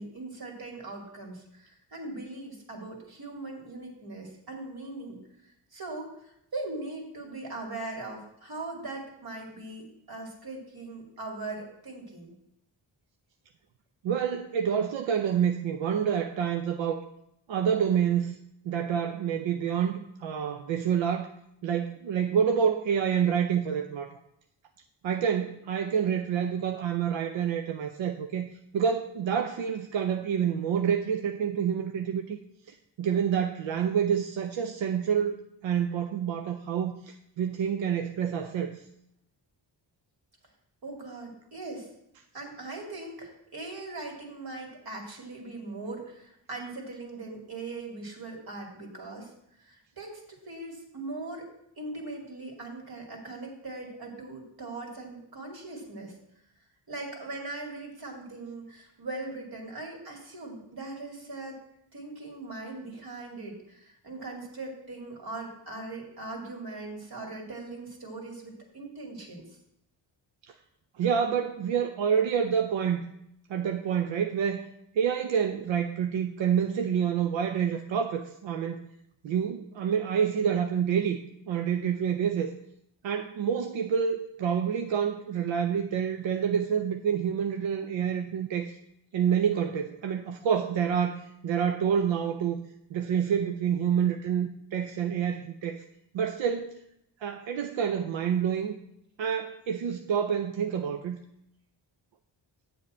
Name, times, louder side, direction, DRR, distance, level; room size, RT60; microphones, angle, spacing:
voice 1, 0.0-12.3 40.8-41.9 42.3-49.3 49.6-51.5 51.8-56.1 56.9-61.6 61.9-69.5, right 2 dB, 55° right, 0 dB, 2.6 m, -40 dB
voice 2, 14.0-17.0 17.5-18.4 18.7-21.3 21.6-24.2 25.0-32.4 33.0-35.4 35.6-38.8 71.0-73.1 73.5-74.6 74.9-78.8 79.2-81.2 81.5-82.5 83.0-88.7 89.1-92.6 92.9-95.8 96.1-96.7 97.2-98.7 99.2-101.2, right 8 dB, 90° right, 5 dB, 0.6 m, -28 dB
8.1 x 7.5 x 4.3 m, 0.77 s
cardioid pair, 70°, 44 cm